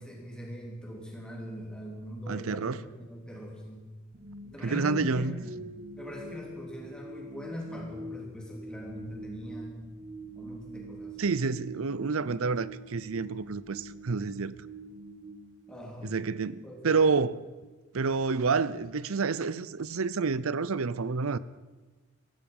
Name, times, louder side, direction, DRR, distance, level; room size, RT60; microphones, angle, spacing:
voice 1, 0.0-3.9 4.4-5.6 6.0-9.9 10.4-11.2 15.7-16.2 16.6-17.0, equal, 5° left, 3.1 m, -41 dB
voice 2, 2.3-2.8 4.6-5.3 11.2-14.6 16.0-17.3 17.9-21.4, right 4 dB, 90° right, 0.6 m, -29 dB
sound 1, 4.1-16.3, right 2 dB, 35° right, 1.4 m, -45 dB
16.5 x 15.0 x 5.5 m
head